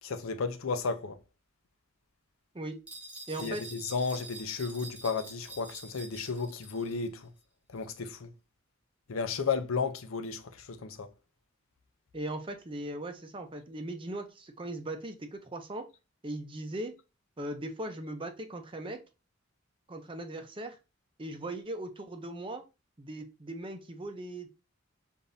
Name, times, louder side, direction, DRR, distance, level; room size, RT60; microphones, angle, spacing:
voice 1, 0.0-1.2 3.4-7.3 7.7-8.3 9.1-11.1, left 5 dB, 85° left, 0.6 m, -33 dB
sound 1, 2.9-7.0, right 2 dB, 5° right, 1.0 m, -47 dB
voice 2, 3.3-3.6 12.1-15.9 16.2-16.9 17.4-19.0 19.9-20.8 21.2-22.6 23.0-24.5, right 1 dB, 25° right, 0.6 m, -39 dB
6.7 x 2.6 x 2.6 m
head